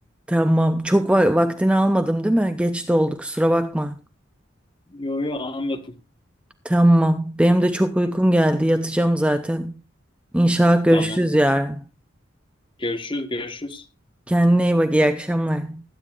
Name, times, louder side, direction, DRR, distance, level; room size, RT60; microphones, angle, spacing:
voice 1, 0.3-3.9 6.6-9.7 10.3-11.8 14.3-15.8, right 1 dB, 5° right, 0.4 m, -19 dB
voice 2, 4.9-5.9 10.9-11.2 12.8-13.8, left 2 dB, 25° left, 1.3 m, -29 dB
19.5 x 9.2 x 2.4 m
head